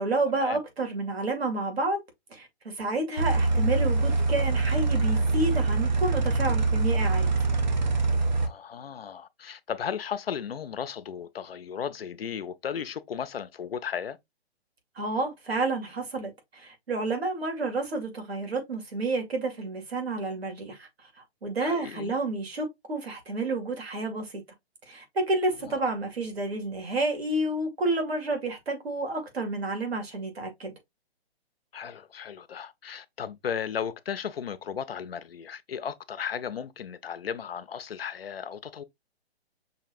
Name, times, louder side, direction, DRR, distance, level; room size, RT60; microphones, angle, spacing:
voice 1, 0.0-2.0 2.3-7.3 15.0-20.9 21.4-24.4 24.9-30.7, right 2 dB, 70° right, 2.1 m, -30 dB
sound 1, 3.2-8.5, right 3 dB, 45° right, 0.6 m, -24 dB
voice 2, 8.4-14.2 21.6-22.1 25.6-25.7 31.7-38.8, left 8 dB, 65° left, 0.6 m, -35 dB
5.8 x 2.8 x 2.5 m
hypercardioid pair, 180°, 32 cm